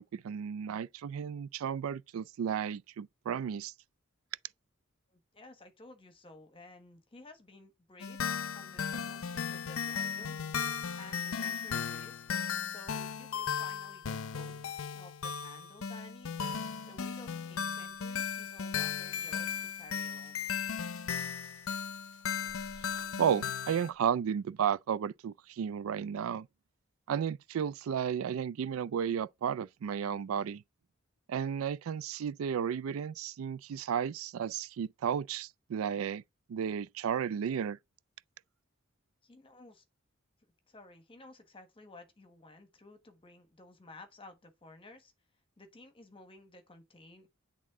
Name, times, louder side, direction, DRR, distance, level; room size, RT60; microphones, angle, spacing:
voice 1, 0.0-3.7 22.8-26.5 27.1-30.6 31.3-36.2 36.5-37.8, right 8 dB, 85° right, 0.3 m, -33 dB
voice 2, 5.1-8.2 8.5-10.4 10.9-12.2 12.6-14.6 14.9-16.3 16.8-20.4 39.2-39.8 40.7-45.1 45.6-47.3, left 2 dB, 25° left, 1.3 m, -54 dB
sound 1, 8.0-23.9, left 7 dB, 85° left, 0.6 m, -36 dB
sound 2, 17.9-24.2, right 2 dB, 35° right, 1.9 m, -63 dB
8.5 x 3.6 x 3.6 m
head